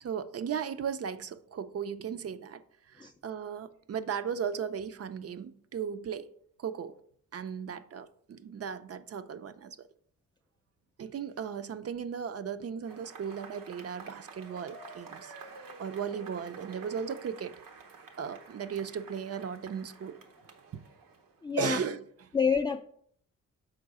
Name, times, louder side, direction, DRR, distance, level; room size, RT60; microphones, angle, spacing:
voice 1, 0.0-6.3 6.6-6.9 7.3-9.9 11.0-15.3 15.8-17.6 18.2-20.2 20.7-20.9 21.6-22.0, right 7 dB, 45° right, 0.5 m, -36 dB
Cheering / Applause / Crowd, 12.8-21.5, right 4 dB, 90° right, 1.1 m, -49 dB
voice 2, 21.4-21.8 22.3-22.8, left 6 dB, 15° left, 0.3 m, -27 dB
6.4 x 4.6 x 4.8 m
wide cardioid pair, 115°, 33 cm